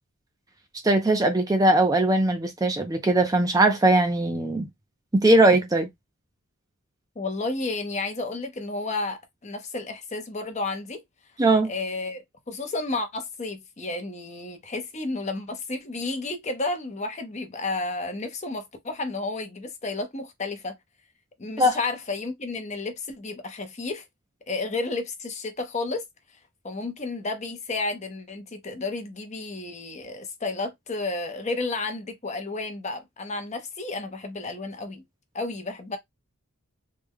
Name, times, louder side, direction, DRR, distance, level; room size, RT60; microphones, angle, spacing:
voice 1, 0.8-4.7 5.1-5.9 11.4-11.7 21.6-21.8, right 2 dB, 15° right, 0.4 m, -20 dB
voice 2, 7.2-11.0 11.6-20.8 21.4-24.0 24.5-26.0 26.6-35.0 35.3-36.0, left 3 dB, 30° left, 0.6 m, -32 dB
3.3 x 2.1 x 3.5 m
head